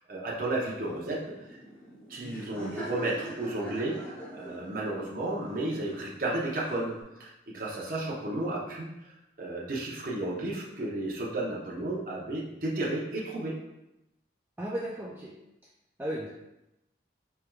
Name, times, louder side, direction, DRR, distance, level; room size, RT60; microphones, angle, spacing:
voice 1, 0.1-1.2 1.5-1.6 2.1-8.9 9.4-13.6, right 2 dB, 50° right, -4 dB, 0.7 m, -33 dB
Laughter, 0.7-7.0, equal, 10° left, 0.9 m, -43 dB
voice 2, 14.6-15.3 16.0-16.3, right 1 dB, 10° right, -5 dB, 0.3 m, -35 dB
4.5 x 3.3 x 2.3 m, 0.91 s
head